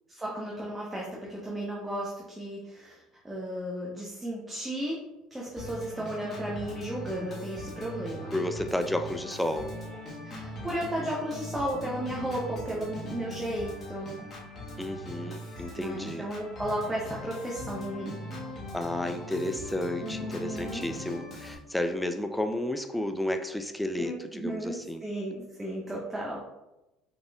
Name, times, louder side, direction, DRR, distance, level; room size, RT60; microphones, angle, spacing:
voice 1, 0.1-3.0 3.2-5.0 5.3-8.3 10.2-14.2 15.8-18.1 20.0-20.8 23.9-26.4, right 1 dB, 10° right, -5 dB, 1.0 m, -34 dB
Organ, 5.6-21.6, left 1 dB, 35° left, 1.3 m, -40 dB
voice 2, 8.3-9.7 14.8-16.3 18.7-25.0, left 1 dB, 5° left, 7 dB, 0.4 m, -32 dB
5.0 x 4.1 x 2.3 m, 0.97 s
supercardioid pair, 105°, 0 cm